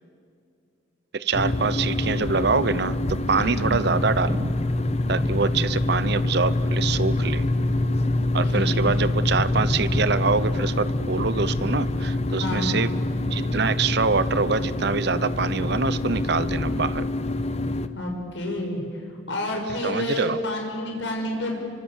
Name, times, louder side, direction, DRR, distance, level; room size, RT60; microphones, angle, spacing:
voice 1, 1.1-4.5 5.1-7.4 8.3-12.9 13.3-17.1 19.8-20.4, right 4 dB, 55° right, 15 dB, 0.8 m, -25 dB
sound 1, 1.3-17.9, left 1 dB, 35° left, 1.0 m, -25 dB
voice 2, 3.3-3.7 8.4-8.8 12.4-12.8 17.9-21.6, left 1 dB, 70° left, 1 dB, 6.0 m, -29 dB
27.5 x 24.5 x 8.1 m, 2.4 s
head